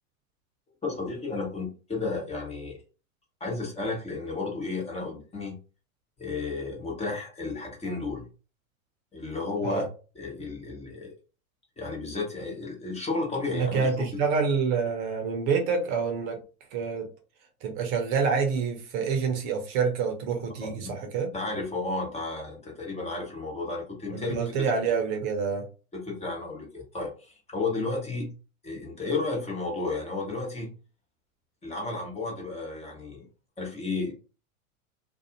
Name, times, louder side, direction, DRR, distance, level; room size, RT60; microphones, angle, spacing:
voice 1, 0.8-2.8 3.4-5.6 6.2-8.3 9.1-9.9 10.1-11.1 11.8-13.9 20.6-20.7 21.3-24.4 25.9-28.3 28.6-30.7 31.6-33.3 33.6-34.1, left 3 dB, 15° left, 1.1 m, -32 dB
voice 2, 13.5-16.4 16.7-17.1 17.6-21.3 24.1-25.6, right 5 dB, 45° right, 0.9 m, -27 dB
2.6 x 2.4 x 2.8 m
hypercardioid pair, 105°, 42 cm